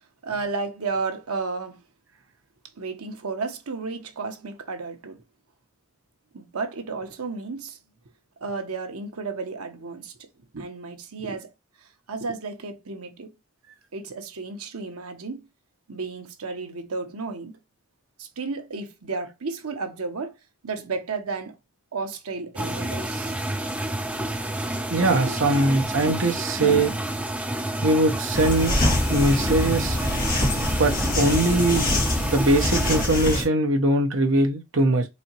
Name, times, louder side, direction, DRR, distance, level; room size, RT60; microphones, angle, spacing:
voice 1, 0.2-1.8 2.8-5.2 6.3-7.8 8.4-10.1 10.5-11.5 12.1-13.3 13.9-15.4 15.9-17.5 18.2-20.4 20.6-21.5 21.9-23.4 25.1-25.7, right 4 dB, 90° right, 0.9 m, -32 dB
sound 1, 22.6-33.1, right 1 dB, 5° right, 0.3 m, -29 dB
voice 2, 24.9-26.9 27.8-28.7 29.1-30.0 30.8-31.8 32.2-35.1, right 2 dB, 60° right, 0.8 m, -21 dB
sound 2, 28.3-33.5, left 1 dB, 40° left, 1.6 m, -24 dB
4.2 x 2.8 x 2.9 m
head